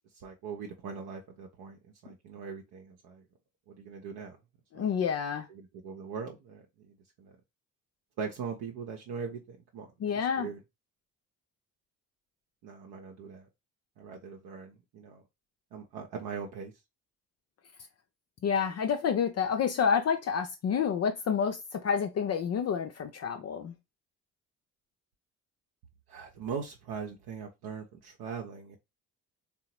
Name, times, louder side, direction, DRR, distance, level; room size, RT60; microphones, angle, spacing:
voice 1, 0.2-3.2 3.7-4.4 4.7-4.9 5.5-7.4 8.2-9.9 10.1-10.6 12.6-13.5 14.0-15.2 15.7-16.7 26.1-28.8, right 6 dB, 55° right, 0.8 m, -41 dB
voice 2, 4.7-5.5 10.0-10.5 18.4-23.7, left 7 dB, 35° left, 0.5 m, -29 dB
3.7 x 2.0 x 4.2 m
figure-of-eight pair, 45°, 46 cm